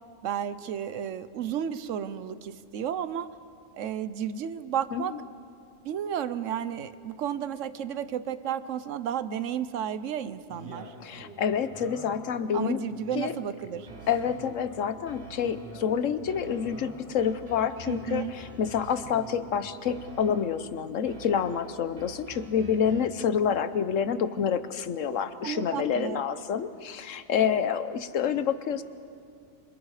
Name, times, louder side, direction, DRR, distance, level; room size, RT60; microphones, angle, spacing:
voice 1, 0.2-3.3 3.7-5.1 5.8-10.9 12.5-13.9 17.9-18.3 25.4-26.2, right 9 dB, 70° right, 14 dB, 1.1 m, -32 dB
Male speech man speaking, 10.5-12.3 12.9-14.9 15.4-17.1 17.8-19.8, right 1 dB, 10° right, 6.5 m, -47 dB
voice 2, 11.0-12.8 13.1-13.3 14.1-28.8, left 7 dB, 75° left, 12 dB, 1.2 m, -28 dB
sound 1, 13.9-14.7 15.1-15.9 16.3-19.5 19.9-20.7 21.1-23.3, right 2 dB, 50° right, 2.5 m, -47 dB
27.5 x 26.5 x 4.9 m, 2.4 s
omnidirectional pair, 1.3 m